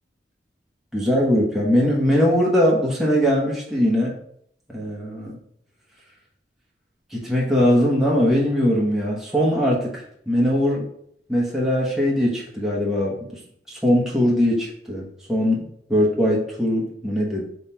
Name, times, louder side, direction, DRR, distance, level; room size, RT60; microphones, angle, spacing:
voice 1, 0.9-4.1 4.7-5.4 7.1-9.9 10.3-10.9 11.3-13.3 13.7-15.6 15.9-17.4, equal, ahead, -5 dB, 1.0 m, -20 dB
3.8 x 3.2 x 4.3 m, 0.66 s
head